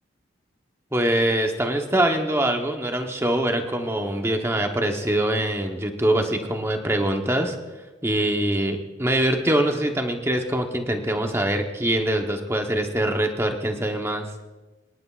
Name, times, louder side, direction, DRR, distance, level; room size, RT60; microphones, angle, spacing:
voice 1, 0.9-7.5 8.0-14.3, right 1 dB, 15° right, 4 dB, 0.9 m, -23 dB
24.5 x 10.5 x 2.4 m, 1.2 s
head